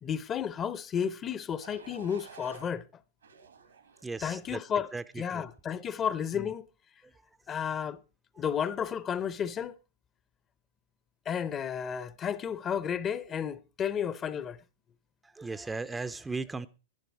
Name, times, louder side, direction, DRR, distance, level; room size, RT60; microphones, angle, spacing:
voice 1, 0.0-2.8 4.2-4.9 5.2-6.7 7.5-8.0 8.4-9.8 11.3-14.6, left 8 dB, 25° left, 0.7 m, -32 dB
sound 1, 1.6-2.7 3.2-4.3 4.8-5.2, right 6 dB, 85° right, 2.0 m, -52 dB
voice 2, 4.0-4.6 4.9-5.4 5.9-6.0 6.3-6.5 7.0-7.6 8.3-8.4 15.2-16.7, right 3 dB, 10° right, 0.5 m, -38 dB
11.0 x 11.0 x 4.6 m
hypercardioid pair, 115°, 0 cm